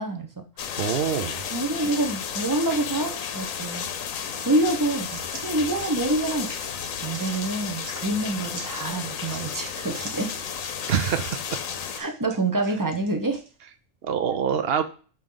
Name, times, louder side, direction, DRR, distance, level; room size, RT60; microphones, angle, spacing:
voice 1, 0.0-0.8 1.5-3.8 4.4-6.5 7.0-10.3 12.0-13.4, right 2 dB, 20° right, 4 dB, 0.7 m, -27 dB
sound 1, 0.6-12.0, left 7 dB, 75° left, 1.1 m, -33 dB
voice 2, 0.8-1.4 10.9-11.6 14.0-14.8, right 8 dB, 55° right, 10 dB, 0.8 m, -25 dB
sound 2, 4.3-13.5, right 4 dB, 70° right, 1.4 m, -45 dB
8.9 x 3.1 x 3.8 m, 0.38 s
omnidirectional pair, 1.4 m